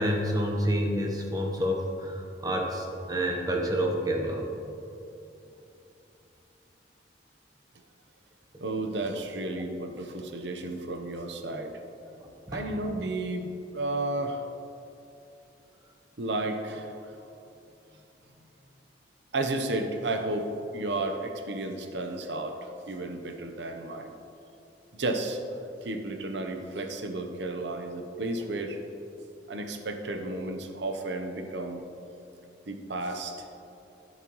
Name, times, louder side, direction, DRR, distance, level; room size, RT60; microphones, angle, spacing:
voice 1, 0.0-4.5 12.5-12.6 22.3-22.4, equal, 20° right, 1 dB, 1.0 m, -28 dB
voice 2, 8.6-11.7 12.5-14.4 16.2-17.1 19.3-20.5 20.7-24.2 24.9-25.4 25.8-28.8 29.5-31.8 32.7-33.5, right 2 dB, 70° right, 5 dB, 0.8 m, -32 dB
12.0 x 10.0 x 3.1 m, 2.8 s
head